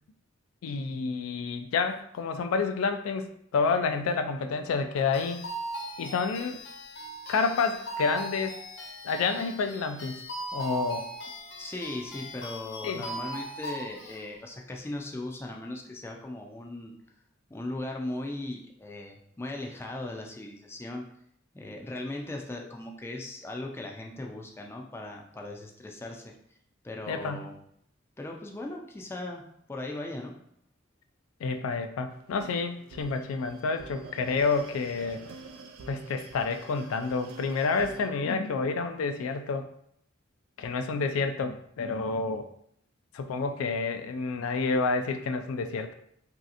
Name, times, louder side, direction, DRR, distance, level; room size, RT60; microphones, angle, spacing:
voice 1, 0.6-3.3 3.5-5.4 6.0-6.6 7.3-8.5 9.0-10.2 10.5-11.1 12.8-13.1 27.1-27.5 31.4-35.2 35.9-39.7 40.6-42.5 43.1-45.9, left 4 dB, 90° left, 7 dB, 0.3 m, -29 dB
sound 1, 5.1-14.2, right 1 dB, 60° left, 0.7 m, -39 dB
voice 2, 11.6-16.9 17.5-21.0 21.5-26.3 26.8-27.5 28.2-29.4 29.7-30.4, left 2 dB, 10° left, 1 dB, 0.3 m, -38 dB
sound 2, 32.1-38.1, right 4 dB, 90° right, 0.4 m, -48 dB
3.1 x 2.8 x 2.5 m, 0.69 s
head